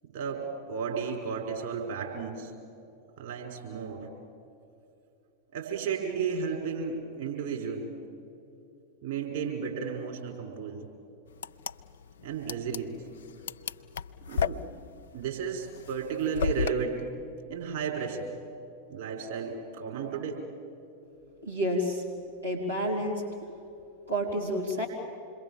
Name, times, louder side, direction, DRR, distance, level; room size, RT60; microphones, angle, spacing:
voice 1, 0.1-2.5 3.2-4.1 5.5-7.9 9.0-10.8 12.2-13.0 14.3-14.6 15.1-17.1 17.4-18.4 18.9-20.4, right 6 dB, 50° right, 0 dB, 5.1 m, -33 dB
sound 1, 11.3-16.7, left 7 dB, 60° left, 0.5 m, -34 dB
voice 2, 21.4-22.1 22.4-23.2 24.1-24.9, equal, 85° right, -3 dB, 3.7 m, -29 dB
27.5 x 22.0 x 7.3 m, 2.8 s
figure-of-eight pair, 90°, 0 cm